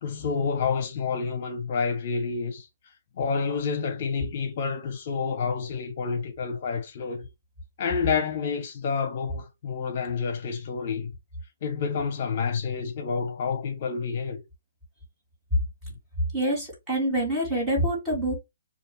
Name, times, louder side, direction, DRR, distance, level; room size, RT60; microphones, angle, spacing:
voice 1, 0.0-2.7 3.2-7.3 7.8-11.1 11.6-14.4, left 5 dB, 45° left, 0.9 m, -29 dB
voice 2, 16.3-18.4, right 1 dB, 15° right, 3.4 m, -26 dB
6.8 x 2.5 x 3.1 m
hypercardioid pair, 155°, 0 cm